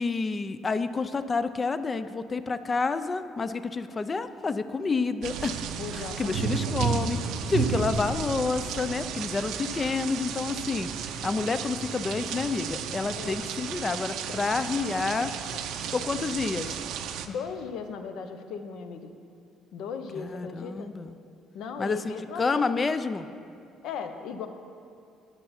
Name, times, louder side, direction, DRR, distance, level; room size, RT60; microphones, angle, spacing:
voice 1, 0.0-5.6 6.0-7.2 7.5-10.9 11.2-15.3 15.8-16.8 20.2-21.1 21.8-23.3, left 4 dB, 25° left, 12 dB, 0.4 m, -29 dB
sound 1, 5.2-17.3, right 7 dB, 70° right, 0.6 m, -33 dB
voice 2, 5.8-7.0 13.1-13.5 14.3-14.4 14.8-14.9 15.5-15.7 17.3-19.1 19.7-20.9 21.5-22.6 23.8-24.5, left 6 dB, 65° left, 7 dB, 0.7 m, -37 dB
10.0 x 6.7 x 5.8 m, 2.5 s
cardioid pair, 140°, 0 cm